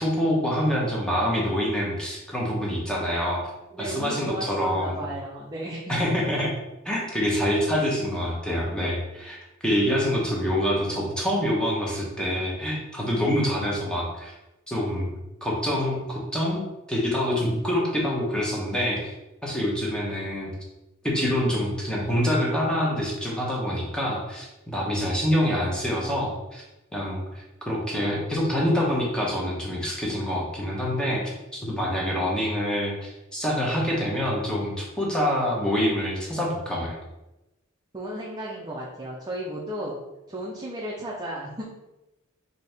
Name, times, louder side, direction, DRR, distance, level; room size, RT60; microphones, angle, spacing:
voice 1, 0.0-3.4 3.8-5.0 5.9-6.5 6.8-9.4 9.6-14.3 14.7-15.1 15.4-19.1 19.4-20.5 21.0-26.6 26.9-37.0, equal, 5° left, -4 dB, 0.9 m, -26 dB
voice 2, 3.7-6.2 10.1-10.2 37.9-40.0 40.3-41.6, right 1 dB, 20° right, -4 dB, 0.5 m, -34 dB
4.2 x 2.7 x 3.4 m, 0.98 s
head